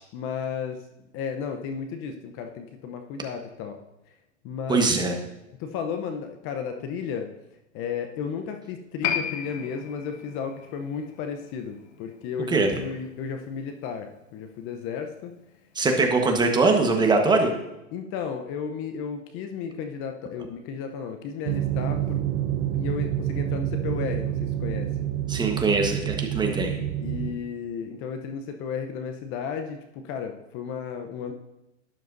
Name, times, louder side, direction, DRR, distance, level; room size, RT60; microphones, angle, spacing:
voice 1, 0.1-0.9 1.1-3.8 4.4-4.8 5.6-7.3 7.7-15.3 15.9-16.5 17.9-22.2 22.7-24.9 27.0-31.3, left 6 dB, 35° left, 6 dB, 0.8 m, -33 dB
voice 2, 4.7-5.1 12.5-12.7 15.7-17.5 25.3-26.8, right 3 dB, 10° right, 3 dB, 1.3 m, -22 dB
Piano, 9.0-16.3, left 8 dB, 60° left, 1.5 m, -36 dB
sound 1, 21.5-27.3, right 11 dB, 50° right, 0.9 m, -28 dB
12.0 x 10.5 x 2.7 m, 0.93 s
hypercardioid pair, 125°, 37 cm